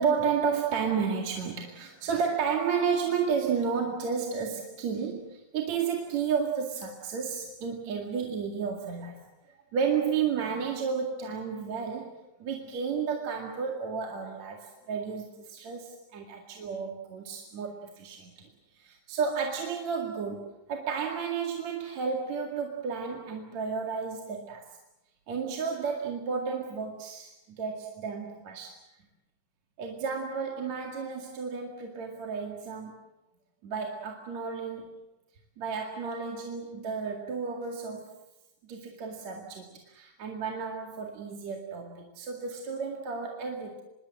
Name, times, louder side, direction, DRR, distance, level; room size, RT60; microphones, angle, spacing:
voice 1, 0.0-9.2 9.5-18.5 18.8-24.7 25.3-28.8 29.8-33.0 33.6-34.9 35.6-38.2 38.7-43.8, right 6 dB, 55° right, 1 dB, 3.3 m, -32 dB
25.5 x 22.5 x 7.6 m, 0.92 s
omnidirectional pair, 4.0 m